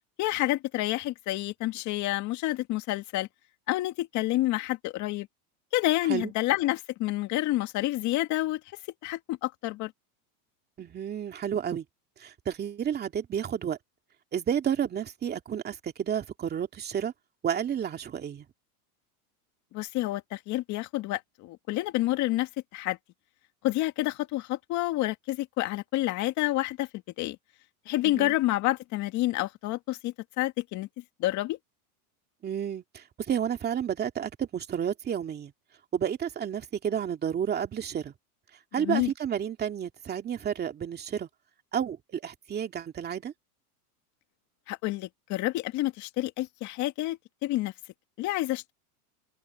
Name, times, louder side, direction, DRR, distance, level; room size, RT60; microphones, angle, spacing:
voice 1, 0.2-3.3 3.7-5.3 5.7-8.6 9.0-9.9 19.7-23.0 23.6-26.9 27.2-27.4 27.9-31.6 38.8-39.1 44.7-47.7 48.2-48.7, left 17 dB, 40° left, 2.0 m, -29 dB
voice 2, 10.8-11.8 12.2-13.8 14.3-17.1 17.4-18.5 28.0-28.3 32.4-35.5 35.9-38.1 38.7-41.3 41.7-43.3, right 8 dB, 20° right, 2.4 m, -31 dB
open air
supercardioid pair, 145°, 46 cm